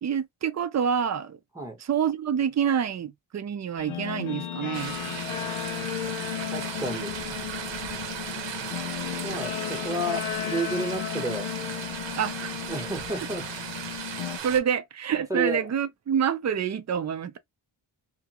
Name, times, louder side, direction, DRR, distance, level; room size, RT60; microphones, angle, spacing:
voice 1, 0.0-1.4 1.8-5.0 12.2-12.5 14.4-17.4, right 8 dB, 35° right, 0.4 m, -27 dB
Guitar, 3.8-14.4, left 11 dB, 85° left, 0.6 m, -34 dB
sound 1, 4.7-14.6, right 7 dB, 65° right, 0.8 m, -36 dB
voice 2, 6.5-7.2 9.2-11.5 12.6-13.5 15.3-15.6, right 1 dB, 5° right, 0.9 m, -31 dB
2.8 x 2.4 x 2.9 m
wide cardioid pair, 105°, 48 cm